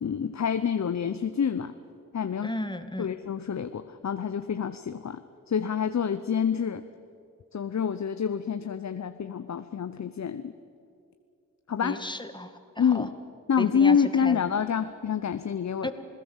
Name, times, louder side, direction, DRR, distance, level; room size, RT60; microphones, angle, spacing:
voice 1, 0.0-1.7 2.1-2.5 3.0-6.8 7.5-10.5 11.7-12.0 12.8-13.1 13.5-15.9, left 7 dB, 50° left, 10 dB, 0.9 m, -27 dB
voice 2, 2.4-3.1 11.8-13.1 13.6-14.4 15.8-15.9, left 1 dB, 10° left, 8 dB, 2.1 m, -34 dB
27.5 x 17.0 x 7.4 m, 2.5 s
supercardioid pair, 40°, 36 cm